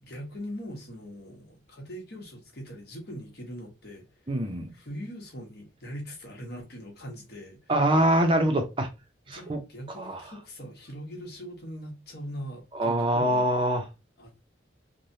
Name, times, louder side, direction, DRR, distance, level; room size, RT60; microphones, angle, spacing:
voice 1, 0.0-7.7 9.3-13.5 14.2-14.4, equal, 60° left, 1.2 m, -41 dB
voice 2, 4.3-4.7 7.7-8.9 9.3-9.6 10.0-10.2 12.7-13.8, right 1 dB, 30° right, 0.6 m, -24 dB
3.2 x 2.2 x 2.6 m
head